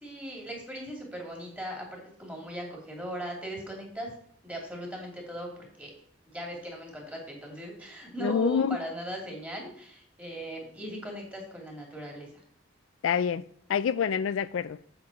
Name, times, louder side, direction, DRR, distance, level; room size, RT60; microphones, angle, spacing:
voice 1, 0.0-4.1 4.4-5.5 5.8-5.9 6.3-12.4, right 1 dB, 5° right, 2.7 m, -38 dB
voice 2, 8.2-8.8 13.0-13.4 13.7-14.8, left 7 dB, 80° left, 0.3 m, -26 dB
8.0 x 7.7 x 4.2 m
head